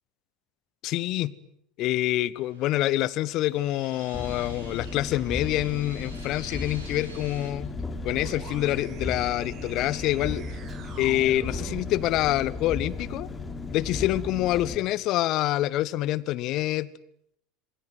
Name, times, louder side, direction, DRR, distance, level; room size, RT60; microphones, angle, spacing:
voice 1, 0.8-1.3 1.8-7.7 8.0-10.4 11.0-13.3 13.7-16.9, left 15 dB, 45° left, 19 dB, 1.3 m, -26 dB
sound 1, 2.4-7.5, right 2 dB, 80° right, 7.8 m, -49 dB
Engine, 4.1-14.8, left 3 dB, 15° left, 3.7 m, -36 dB
sound 2, 8.0-12.1, right 6 dB, 40° right, 5.3 m, -43 dB
27.0 x 23.5 x 9.4 m, 0.75 s
figure-of-eight pair, 75°, 0 cm